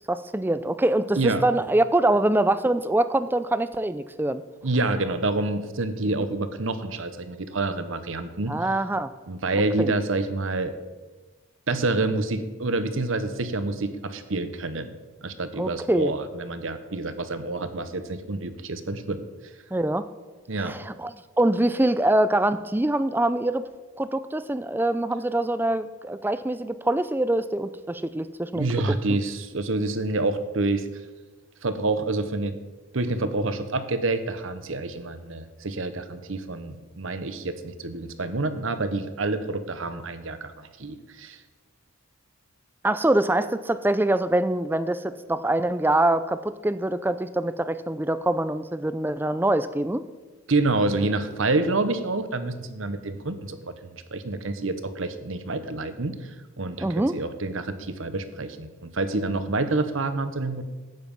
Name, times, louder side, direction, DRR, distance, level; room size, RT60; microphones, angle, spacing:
voice 1, 0.1-4.4 8.5-9.1 9.5-9.9 15.6-16.1 19.7-20.1 20.6-23.7 24.0-29.0 42.8-50.0 56.8-57.1, right 1 dB, 10° right, 13 dB, 0.4 m, -24 dB
voice 2, 4.6-8.5 9.3-10.7 11.7-14.9 15.2-19.2 20.5-20.8 28.5-30.9 31.6-32.6 32.9-41.4 50.5-53.6 53.9-56.3 56.6-60.6, right 2 dB, 65° right, 11 dB, 1.0 m, -27 dB
12.0 x 9.4 x 5.4 m, 1.3 s
head